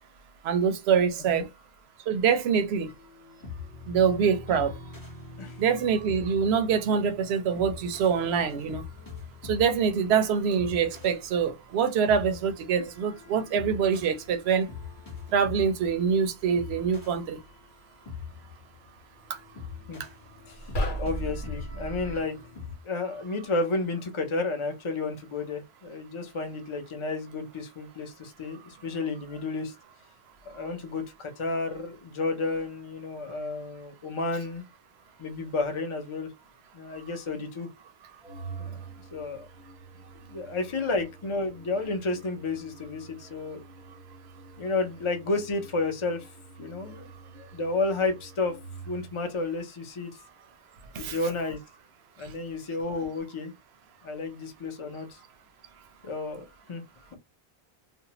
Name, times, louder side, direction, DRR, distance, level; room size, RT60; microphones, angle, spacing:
voice 1, 0.4-1.5 2.1-2.9 3.9-4.7 5.6-8.8 9.4-14.7 15.3-17.4 50.9-51.2 52.2-52.3, right 6 dB, 80° right, 0.8 m, -25 dB
sound 1, 2.9-22.8, left 5 dB, 20° left, 1.0 m, -44 dB
sound 2, 20.6-22.2, equal, 85° left, 1.1 m, -32 dB
voice 2, 21.0-22.4 22.8-29.7 30.5-34.6 35.2-36.3 36.7-37.7 38.6-38.8 39.1-39.5 40.3-43.6 44.6-46.3 46.6-47.1 47.3-48.6 48.9-50.1 51.0-51.6 52.2-53.5 54.0-55.2 56.0-56.8, left 3 dB, 35° left, 0.6 m, -31 dB
Organ, 38.2-49.2, right 4 dB, 5° right, 0.7 m, -47 dB
2.6 x 2.1 x 2.8 m
omnidirectional pair, 1.1 m